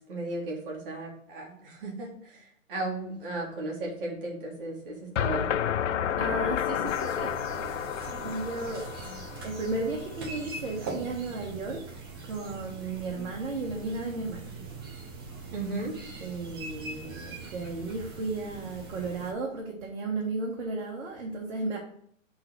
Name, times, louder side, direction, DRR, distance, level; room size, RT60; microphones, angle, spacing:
voice 1, 0.1-5.6 15.5-16.0, right 2 dB, 40° right, -2 dB, 2.1 m, -35 dB
sound 1, 5.2-10.1, left 9 dB, 65° left, 0.5 m, -31 dB
voice 2, 6.2-7.3 8.2-8.8 9.4-11.8 12.2-14.5 16.2-21.8, right 3 dB, 60° right, -2 dB, 1.6 m, -34 dB
sound 2, 6.8-19.3, right 3 dB, 20° right, 0.6 m, -41 dB
5.8 x 4.0 x 6.0 m, 0.65 s
hypercardioid pair, 150°, 40 cm